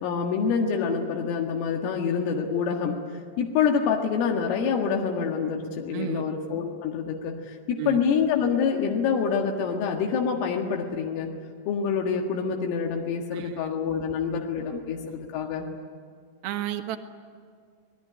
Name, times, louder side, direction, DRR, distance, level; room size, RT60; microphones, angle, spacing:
voice 1, 0.0-3.0 3.4-7.3 7.7-11.3 11.7-15.7, left 6 dB, 90° left, 1 dB, 4.4 m, -26 dB
voice 2, 5.9-6.2 7.8-8.0 13.3-13.6 16.4-17.0, right 13 dB, 65° right, 7 dB, 2.7 m, -31 dB
28.5 x 19.5 x 9.8 m, 2.2 s
omnidirectional pair, 5.7 m